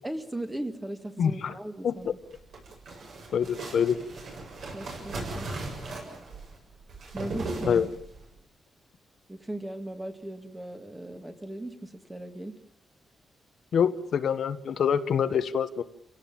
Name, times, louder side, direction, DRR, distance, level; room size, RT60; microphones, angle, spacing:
voice 1, 0.0-2.1 3.7-3.8 4.7-5.5 7.1-7.9 9.3-12.6, right 1 dB, 10° right, 7 dB, 1.9 m, -38 dB
voice 2, 1.2-1.5 1.8-2.1 3.3-4.0 7.7-7.9 13.7-15.8, left 7 dB, 60° left, 9 dB, 1.1 m, -25 dB
sound 1, 2.2-8.3, right 2 dB, 55° right, 7.4 m, -38 dB
29.5 x 17.5 x 7.4 m, 0.73 s
wide cardioid pair, 175°, 0 cm